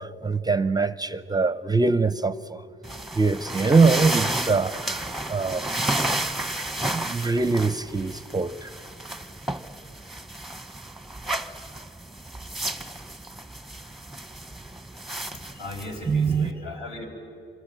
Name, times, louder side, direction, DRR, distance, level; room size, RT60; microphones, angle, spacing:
voice 1, 0.0-2.7 3.1-6.2 6.8-8.7 16.1-16.5, right 4 dB, 20° right, 15 dB, 0.6 m, -23 dB
sound 1, 2.8-16.5, right 1 dB, ahead, 1.1 m, -32 dB
voice 2, 15.3-17.1, left 1 dB, 55° left, 2 dB, 6.1 m, -37 dB
25.5 x 25.5 x 9.0 m, 2.5 s
cardioid pair, 90°, 20 cm